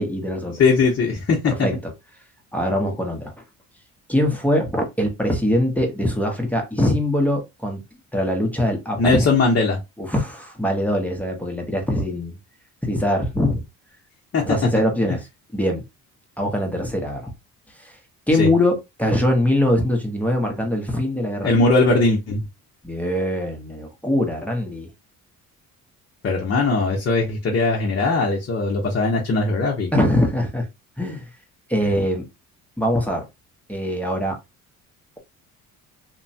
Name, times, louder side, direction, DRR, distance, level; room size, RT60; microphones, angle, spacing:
voice 1, 0.0-0.6 1.5-1.9 2.5-3.3 4.1-7.8 8.1-9.3 10.0-12.3 12.8-13.6 14.4-15.3 15.5-15.8 16.4-17.3 17.8-18.0 18.3-21.5 22.8-24.9 29.9-30.7 31.0-31.2 31.7-32.2 32.8-33.3 33.7-34.4, left 1 dB, 5° left, 0.7 m, -22 dB
voice 2, 0.6-1.7 9.0-9.8 14.3-14.6 18.4-18.5 21.4-22.5 26.2-29.9, left 3 dB, 40° left, 0.7 m, -20 dB
2.9 x 2.1 x 2.6 m
cardioid pair, 105°, 34 cm